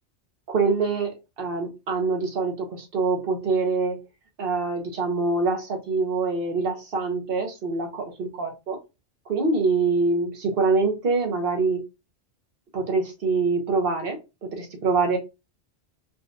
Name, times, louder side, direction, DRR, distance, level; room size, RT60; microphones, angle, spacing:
voice 1, 0.5-4.0 4.4-8.8 9.3-11.8 12.7-15.2, right 4 dB, 55° right, 1.0 m, -25 dB
3.8 x 2.3 x 2.4 m
omnidirectional pair, 1.2 m